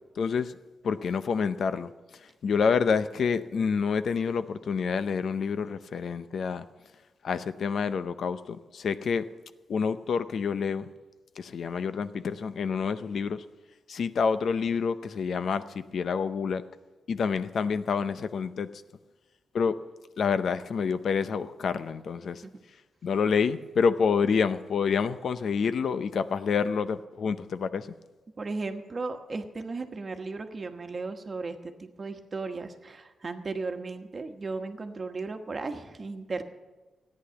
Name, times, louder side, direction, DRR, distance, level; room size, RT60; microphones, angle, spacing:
voice 1, 0.2-0.5 0.8-1.9 2.4-6.6 7.2-9.2 9.7-10.9 11.4-13.4 13.9-16.6 17.1-18.7 19.5-19.8 20.2-22.4 23.0-27.9, left 6 dB, 65° left, 12 dB, 0.6 m, -28 dB
voice 2, 28.4-36.4, right 3 dB, 35° right, 6 dB, 1.2 m, -36 dB
14.5 x 9.9 x 7.0 m, 1.2 s
wide cardioid pair, 120°, 0 cm